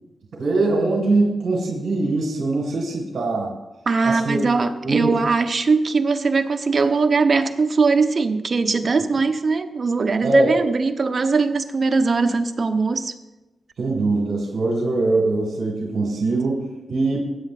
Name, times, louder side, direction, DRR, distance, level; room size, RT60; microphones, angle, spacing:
voice 1, 0.3-3.6 4.0-4.4 4.8-5.2 10.2-10.5 13.8-17.2, right 2 dB, 70° right, -1 dB, 1.8 m, -22 dB
voice 2, 3.9-13.1, right 4 dB, 50° right, 8 dB, 0.8 m, -20 dB
16.5 x 8.6 x 2.5 m, 1.0 s
cardioid pair, 55°, 0 cm